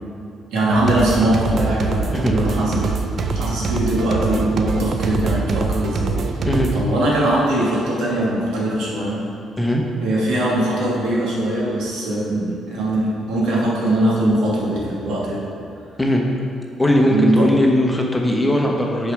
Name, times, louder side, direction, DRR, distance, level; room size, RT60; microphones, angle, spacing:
voice 1, 0.5-3.0 3.3-6.5 6.7-9.2 10.0-15.5 17.1-17.5, right 1 dB, 85° right, -5 dB, 1.6 m, -21 dB
sound 1, 0.8-6.9, right 4 dB, 55° right, 0.4 m, -23 dB
voice 2, 16.8-19.1, left 1 dB, 10° left, 0 dB, 0.9 m, -18 dB
6.6 x 4.5 x 5.0 m, 2.4 s
cardioid pair, 90°, 0 cm